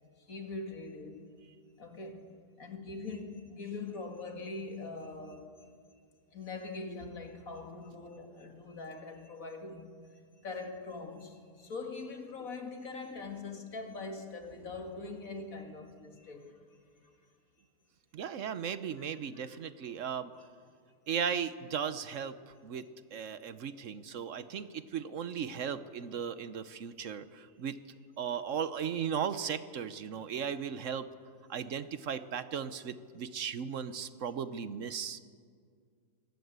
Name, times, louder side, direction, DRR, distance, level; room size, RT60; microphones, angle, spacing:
voice 1, 0.3-1.2 1.8-2.3 2.6-5.5 6.3-16.6 19.3-19.6 19.9-20.1, left 3 dB, 55° left, 2.5 m, -42 dB
voice 2, 18.1-20.3 21.1-22.3 22.6-22.9 23.1-27.8 28.2-31.1 31.5-35.2, right 7 dB, 55° right, 1.0 m, -36 dB
24.0 x 17.5 x 8.1 m
omnidirectional pair, 1.7 m